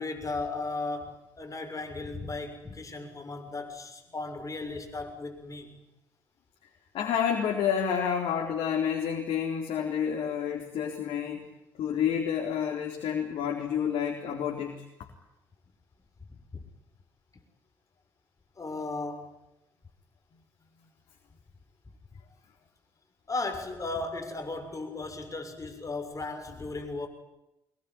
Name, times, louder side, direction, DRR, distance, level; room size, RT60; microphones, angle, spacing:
voice 1, 0.0-5.8 16.5-16.6 18.6-19.3 23.3-27.1, left 3 dB, 35° left, 6 dB, 6.8 m, -36 dB
voice 2, 6.9-11.5 11.8-15.1, left 8 dB, 70° left, 0 dB, 4.2 m, -29 dB
25.0 x 21.5 x 10.0 m, 0.91 s
hypercardioid pair, 50°, 10 cm